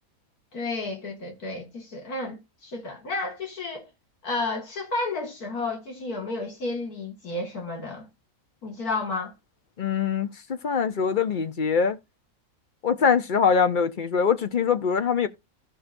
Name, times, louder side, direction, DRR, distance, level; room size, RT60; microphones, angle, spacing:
voice 1, 0.5-3.9 4.2-8.1 8.6-9.3, left 3 dB, 90° left, 2.6 m, -32 dB
voice 2, 9.8-12.0 12.8-15.3, left 6 dB, 45° left, 0.8 m, -23 dB
16.0 x 5.5 x 2.6 m
omnidirectional pair, 1.5 m